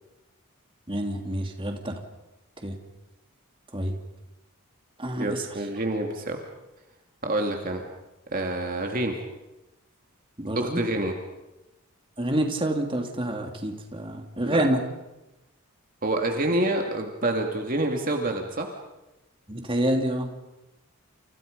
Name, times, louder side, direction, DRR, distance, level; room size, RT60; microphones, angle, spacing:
voice 1, 0.9-1.9 2.6-2.8 3.7-3.9 5.0-5.5 10.4-10.8 12.2-14.8 19.5-20.3, right 1 dB, 25° right, 3 dB, 3.0 m, -27 dB
voice 2, 5.2-6.4 7.2-7.8 8.3-9.1 10.5-11.1 14.4-14.6 16.0-18.7, right 1 dB, 40° right, 3 dB, 2.6 m, -27 dB
30.0 x 29.5 x 5.4 m, 1.0 s
head